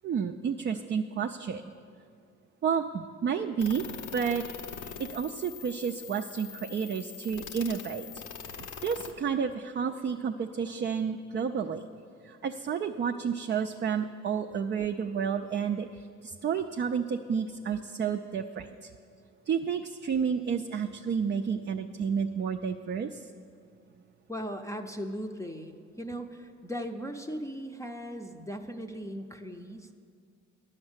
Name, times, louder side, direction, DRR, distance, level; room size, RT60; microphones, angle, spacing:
voice 1, 0.0-1.6 2.6-3.8 4.1-4.4 4.8-8.1 8.6-11.8 12.2-18.9 19.5-23.3, right 7 dB, 40° right, 4 dB, 0.4 m, -31 dB
sound 1, 3.6-9.1, left 7 dB, 80° left, 0.9 m, -43 dB
voice 2, 24.3-29.9, equal, 10° left, 5 dB, 0.6 m, -38 dB
10.5 x 6.5 x 8.0 m, 2.3 s
cardioid pair, 90°, 30 cm